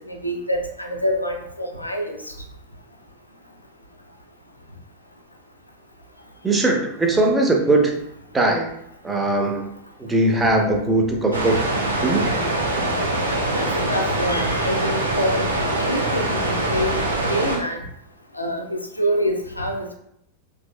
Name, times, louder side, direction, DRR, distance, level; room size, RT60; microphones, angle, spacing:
voice 1, 0.1-2.2 13.5-17.0 17.3-17.8 18.3-19.9, equal, 85° left, 3 dB, 0.4 m, -26 dB
voice 2, 6.4-8.0 8.3-8.7 9.0-9.7 10.0-11.7 12.0-12.3, right 2 dB, 10° right, 1 dB, 0.5 m, -20 dB
sound 1, 11.3-17.6, right 1 dB, 85° right, 0.6 m, -23 dB
2.9 x 2.5 x 2.2 m, 0.75 s
figure-of-eight pair, 90°, 0 cm